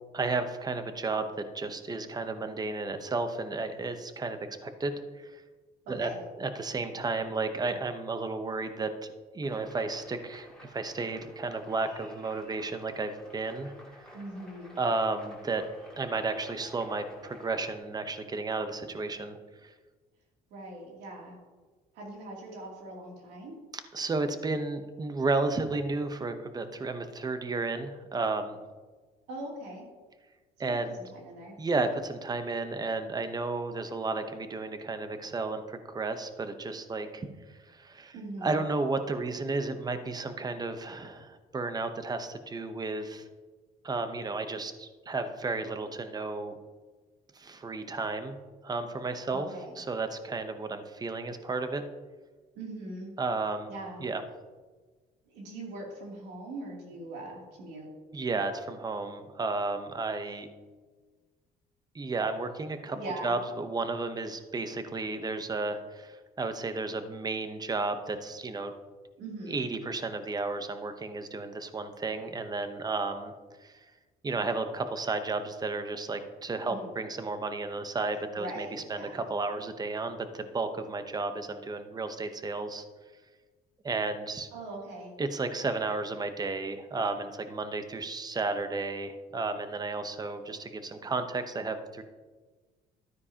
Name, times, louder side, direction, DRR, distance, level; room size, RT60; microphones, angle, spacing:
voice 1, 0.1-5.4 5.9-6.1 6.4-13.7 14.8-15.6 16.0-19.7 23.9-28.6 30.6-31.0 31.6-38.2 38.4-43.3 43.8-46.6 47.3-48.4 48.6-49.5 49.8-51.8 53.2-53.7 54.0-54.2 58.1-60.5 61.9-63.0 63.2-68.7 69.5-73.3 73.6-73.7 74.2-82.8 83.8-84.5 85.2-92.0, right 3 dB, 25° right, 9 dB, 0.9 m, -33 dB
voice 2, 5.8-6.2 14.1-14.8 20.5-21.4 21.9-23.6 29.3-29.9 30.6-31.6 38.1-38.6 49.3-49.8 52.5-53.1 53.7-54.1 55.3-57.9 62.9-63.4 69.2-69.6 76.6-76.9 78.3-79.2 84.5-85.2, right 2 dB, 90° right, -2 dB, 2.8 m, -41 dB
sound 1, 9.4-17.8, equal, 5° left, 2.5 m, -53 dB
12.5 x 9.4 x 2.9 m, 1.4 s
cardioid pair, 110°, 17 cm